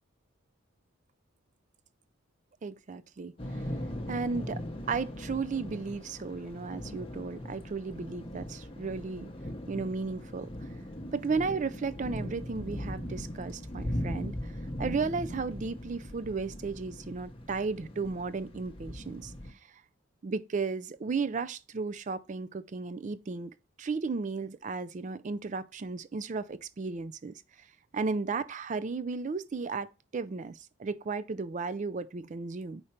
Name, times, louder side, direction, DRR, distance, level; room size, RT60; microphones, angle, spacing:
voice 1, 2.6-3.7 4.1-4.6 4.9-9.3 9.7-10.7 11.1-14.5 14.8-19.3 20.2-27.4 27.9-32.8, right 4 dB, 35° right, 0.3 m, -34 dB
Thunder / Rain, 3.4-19.5, equal, 25° left, 0.8 m, -39 dB
5.1 x 4.3 x 4.3 m
head